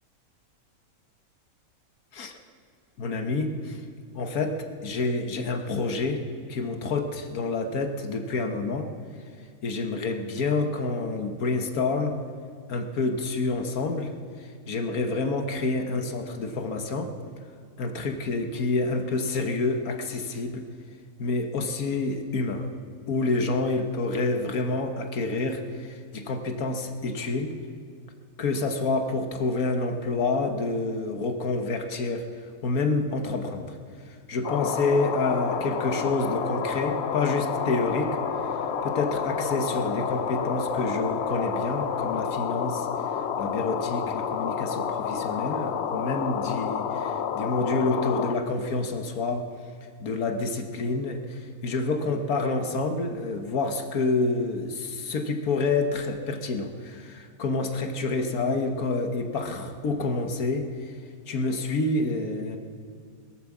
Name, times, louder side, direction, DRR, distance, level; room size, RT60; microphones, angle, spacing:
voice 1, 3.0-3.8 4.1-6.2 6.5-8.9 9.6-12.2 12.7-14.1 14.4-17.1 17.8-20.6 21.2-22.7 23.1-27.6 28.4-32.3 32.6-33.8 34.1-38.2 38.8-42.9 43.4-49.4 50.0-61.0 61.3-62.6, left 3 dB, 80° left, 6 dB, 1.6 m, -28 dB
sound 1, 34.4-48.3, left 7 dB, 55° left, 0.8 m, -30 dB
sound 2, 34.4-42.0, equal, 5° left, 3.8 m, -38 dB
21.5 x 9.3 x 7.2 m, 2.1 s
omnidirectional pair, 1.5 m